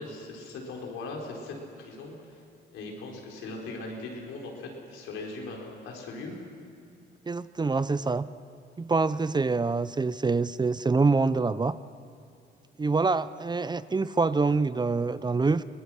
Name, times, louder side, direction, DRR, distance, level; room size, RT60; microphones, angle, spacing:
voice 1, 0.0-2.4 2.7-6.4, left 2 dB, 85° left, -1 dB, 4.3 m, -39 dB
voice 2, 7.3-8.3 8.8-11.8 12.8-15.6, right 4 dB, 20° right, 15 dB, 0.6 m, -25 dB
23.5 x 19.5 x 6.3 m, 2.6 s
cardioid pair, 90°, 20 cm